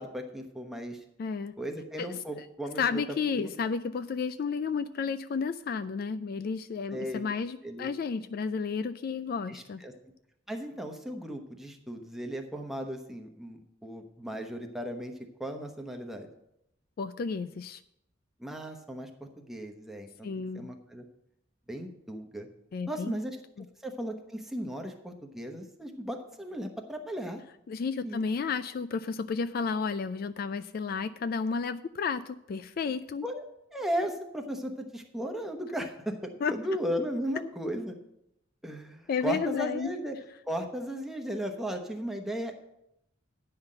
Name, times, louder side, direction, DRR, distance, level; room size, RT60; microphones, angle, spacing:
voice 1, 0.0-1.0 1.6-3.0 3.3-3.5 6.9-7.3 7.6-7.9 9.5-9.9 10.5-15.1 15.4-16.3 18.4-20.3 20.5-21.1 21.7-22.5 22.9-23.4 23.8-27.4 28.0-28.2 33.2-33.4 33.7-38.0 38.6-40.2 40.5-42.5, equal, ahead, 3 dB, 1.0 m, -36 dB
voice 2, 1.2-1.5 2.0-2.1 2.8-9.8 17.0-17.8 20.2-20.7 22.7-23.1 23.6-23.7 27.7-33.3 36.4-36.5 39.1-39.9, left 5 dB, 50° left, 13 dB, 0.3 m, -32 dB
9.6 x 5.7 x 7.6 m, 0.82 s
head